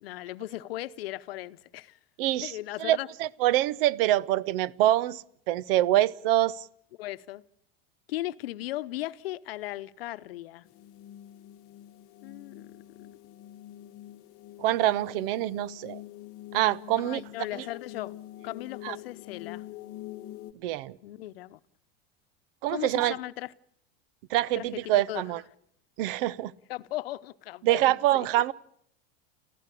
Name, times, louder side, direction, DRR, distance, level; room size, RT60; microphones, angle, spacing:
voice 1, 0.0-2.0 2.4-3.1 6.9-7.4 8.1-10.7 12.2-12.7 13.0-13.1 17.0-18.1 18.4-19.6 21.0-21.6 22.7-23.5 24.5-25.2 26.7-28.5, left 16 dB, 85° left, 0.9 m, -37 dB
voice 2, 2.2-2.5 2.8-6.6 14.6-16.0 16.5-17.2 17.6-17.7 18.8-19.0 20.6-21.0 22.6-23.1 24.3-25.4 26.0-26.5 27.6-28.5, right 14 dB, 70° right, 0.9 m, -25 dB
sound 1, 10.6-20.5, left 15 dB, 50° left, 1.0 m, -45 dB
28.5 x 15.0 x 8.4 m
supercardioid pair, 110°, 29 cm